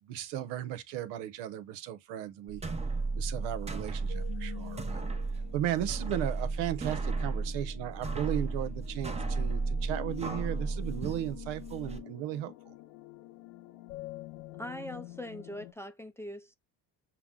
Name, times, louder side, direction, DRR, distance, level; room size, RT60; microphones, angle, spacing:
voice 1, 0.0-2.6 3.2-5.0 5.5-12.7, right 12 dB, 80° right, 0.8 m, -36 dB
sound 1, 2.5-12.0, right 3 dB, 15° right, 0.8 m, -34 dB
sound 2, 4.1-15.7, left 16 dB, 85° left, 0.6 m, -47 dB
voice 2, 14.6-16.6, left 1 dB, 5° left, 0.4 m, -41 dB
5.8 x 2.2 x 3.6 m
supercardioid pair, 90°, 42 cm